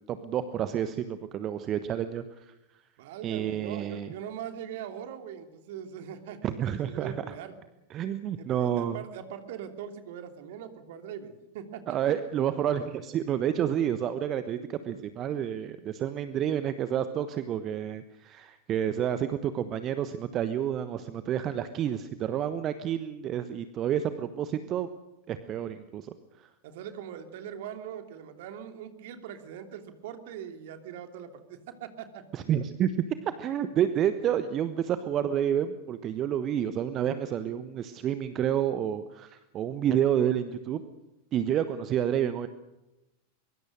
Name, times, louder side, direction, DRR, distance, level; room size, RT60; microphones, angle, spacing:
voice 1, 0.0-2.5 3.2-4.1 6.4-7.3 7.9-9.0 11.9-24.9 25.3-26.5 32.3-32.9 33.4-40.8 41.3-42.5, right 10 dB, 30° right, 11 dB, 1.2 m, -29 dB
voice 2, 3.0-7.6 8.4-12.0 26.6-32.2, right 9 dB, 50° right, 7 dB, 3.0 m, -41 dB
23.5 x 23.5 x 6.5 m, 0.95 s
figure-of-eight pair, 90°, 0 cm